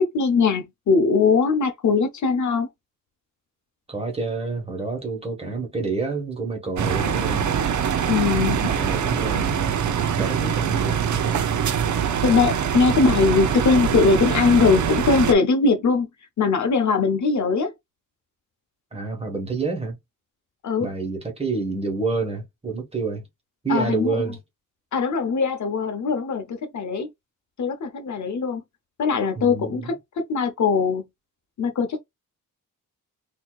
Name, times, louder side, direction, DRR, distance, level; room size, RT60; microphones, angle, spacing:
voice 1, 0.0-2.7 8.1-8.6 12.2-16.1 16.4-17.7 20.6-20.9 23.7-24.2 24.9-27.1 27.6-28.6 29.0-29.9 30.3-31.0 31.6-32.0, left 4 dB, 60° left, 0.9 m, -21 dB
voice 2, 3.9-7.5 8.6-9.8 10.2-11.0 18.9-20.0 20.8-23.3 23.6-24.4 29.3-29.9, right 4 dB, 20° right, 1.5 m, -28 dB
sound 1, 6.8-15.3, right 8 dB, 60° right, 0.7 m, -23 dB
4.2 x 2.9 x 2.4 m
wide cardioid pair, 120°, 33 cm